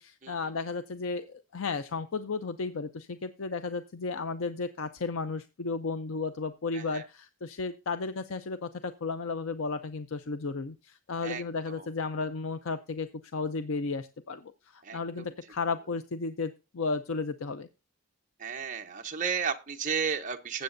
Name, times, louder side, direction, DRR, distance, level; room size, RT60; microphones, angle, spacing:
voice 1, 0.0-17.7, left 4 dB, 75° left, 10 dB, 0.6 m, -34 dB
voice 2, 6.7-7.0 11.2-11.9 14.8-15.3 18.4-20.6, right 6 dB, 35° right, 4 dB, 0.9 m, -33 dB
19.5 x 7.9 x 2.6 m, 0.28 s
head